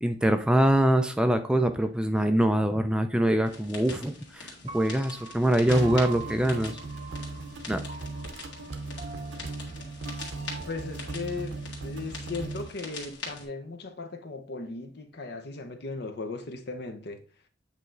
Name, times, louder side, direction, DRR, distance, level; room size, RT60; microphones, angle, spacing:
voice 1, 0.0-6.8 7.7-7.8, right 1 dB, 5° right, 0.3 m, -24 dB
sound 1, 3.5-13.5, left 3 dB, 80° left, 1.9 m, -44 dB
Piano, 4.7-10.9, right 6 dB, 35° right, 0.7 m, -45 dB
sound 2, 5.7-12.7, right 3 dB, 80° right, 0.8 m, -37 dB
voice 2, 10.7-17.2, left 3 dB, 60° left, 0.9 m, -37 dB
8.1 x 3.0 x 3.8 m
head